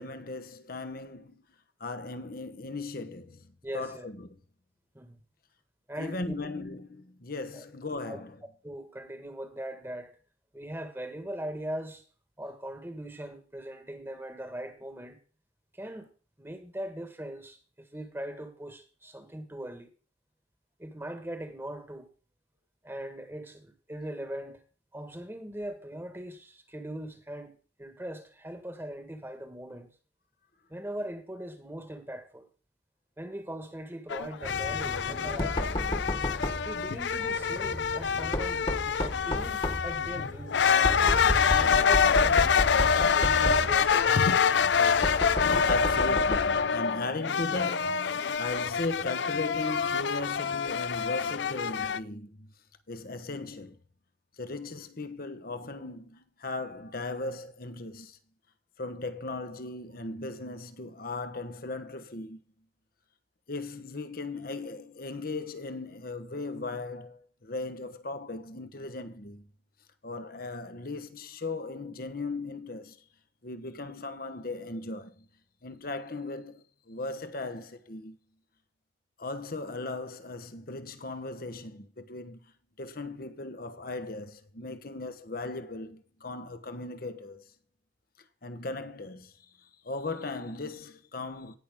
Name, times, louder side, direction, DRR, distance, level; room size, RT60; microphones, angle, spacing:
voice 1, 0.0-1.4 1.8-4.3 5.9-8.4 45.4-52.5 52.9-53.8 54.4-58.2 58.8-62.4 63.5-69.5 70.0-73.1 73.4-75.3 75.6-78.2 79.2-82.5 82.8-87.4 88.4-91.6, left 2 dB, 55° left, 1.1 m, -38 dB
voice 2, 3.6-4.1 4.9-5.2 5.9-6.3 7.5-7.6 8.0-8.2 8.6-10.1 10.5-12.0 12.4-15.2 15.7-16.1 16.4-19.9 20.8-22.1 22.8-24.6 24.9-29.9 30.7-32.5 33.2-35.8 36.6-38.7 39.0-40.7 41.3-42.5 42.9-44.2, right 1 dB, 15° right, 1.5 m, -40 dB
sound 1, 34.1-52.0, left 6 dB, 75° left, 0.5 m, -26 dB
Knock, 34.4-46.6, left 1 dB, 30° left, 1.6 m, -33 dB
18.0 x 6.0 x 3.6 m
head